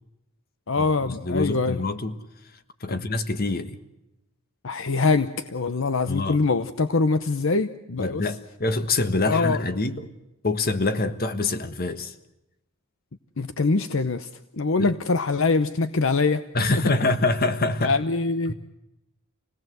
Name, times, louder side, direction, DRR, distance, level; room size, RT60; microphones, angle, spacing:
voice 1, 0.7-1.8 2.9-3.0 4.6-8.3 9.2-9.6 13.4-16.4 16.7-16.8 17.8-18.5, left 3 dB, 65° left, 0.8 m, -24 dB
voice 2, 1.2-2.2 2.8-3.8 6.1-6.4 8.0-10.1 10.4-12.1 14.8-14.9 16.5-18.0 18.5-18.6, left 2 dB, 45° left, 1.4 m, -25 dB
27.0 x 18.0 x 7.9 m
head